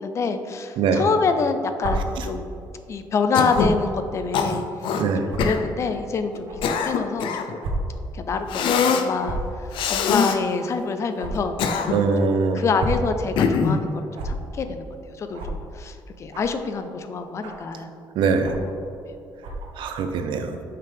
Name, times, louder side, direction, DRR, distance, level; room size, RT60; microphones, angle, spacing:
voice 1, 0.0-2.5 2.9-4.6 5.2-7.7 8.1-9.4 9.9-11.9 12.2-14.8 15.2-17.9, left 4 dB, 35° left, 8 dB, 0.5 m, -26 dB
sound 1, 1.8-1.9 3.5-3.7 4.5-4.6 5.3-5.4 6.5-6.6 7.6-7.7 8.1-8.2 9.2-9.5 11.2-11.3 12.6-13.0 14.1-14.3 15.3-15.5 16.3-16.6 17.4-17.7 18.4-18.7 19.4-19.7, right 2 dB, 90° right, 1.2 m, -31 dB
Cough, 3.3-3.8 4.3-5.0 5.4-5.6 6.3-7.5 8.5-9.1 9.7-10.4 11.3-12.2 13.4-13.8, left 5 dB, 80° left, 0.6 m, -23 dB
voice 2, 11.9-12.6 18.2-18.6 19.8-20.6, right 5 dB, 70° right, 6 dB, 0.7 m, -22 dB
8.9 x 5.8 x 3.5 m, 2.5 s
cardioid pair, 175°, 8 cm